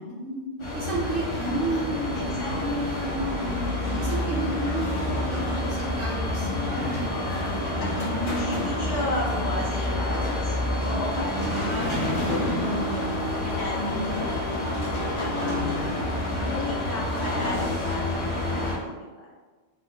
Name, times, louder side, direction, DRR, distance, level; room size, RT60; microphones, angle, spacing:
voice 1, 0.0-3.7 4.0-8.5 11.3-13.2 13.8-14.2 15.4-15.9, right 1 dB, 60° right, -4 dB, 0.6 m, -32 dB
sound 1, 0.6-18.8, left 1 dB, 40° left, 0.4 m, -28 dB
voice 2, 8.3-12.3 12.6-13.0 13.3-14.0 14.3-14.6 15.2-18.9, left 1 dB, 65° left, -5 dB, 1.0 m, -35 dB
3.4 x 2.1 x 2.6 m, 1.3 s
omnidirectional pair, 1.2 m